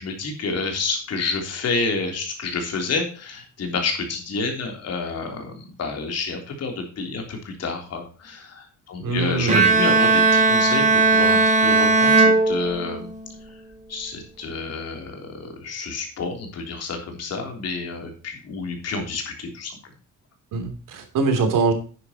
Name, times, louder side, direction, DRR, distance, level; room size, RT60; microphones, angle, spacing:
voice 1, 0.0-13.1 13.4-13.5 13.9-19.8, left 4 dB, 50° left, 3 dB, 3.4 m, -29 dB
voice 2, 9.0-9.6 20.5-21.7, right 4 dB, 80° right, 5 dB, 3.2 m, -23 dB
Bowed string instrument, 9.5-13.2, right 3 dB, 25° right, 2.0 m, -17 dB
11.0 x 9.5 x 3.0 m, 0.37 s
cardioid pair, 180°, 32 cm